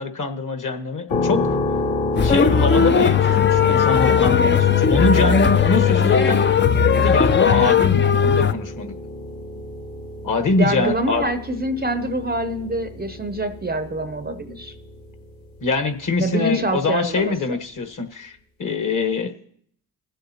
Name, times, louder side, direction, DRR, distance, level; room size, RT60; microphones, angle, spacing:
voice 1, 0.0-1.4 2.2-6.4 6.9-8.9 10.2-11.3 15.6-19.3, left 3 dB, 40° left, 8 dB, 1.4 m, -23 dB
sound 1, 1.1-15.8, left 2 dB, 70° left, 1.9 m, -30 dB
sound 2, 2.1-8.5, left 7 dB, 25° left, 0.5 m, -17 dB
voice 2, 10.6-14.7 16.2-17.3, right 1 dB, 20° right, 9 dB, 0.7 m, -25 dB
19.0 x 7.7 x 2.9 m, 0.63 s
supercardioid pair, 55°, 48 cm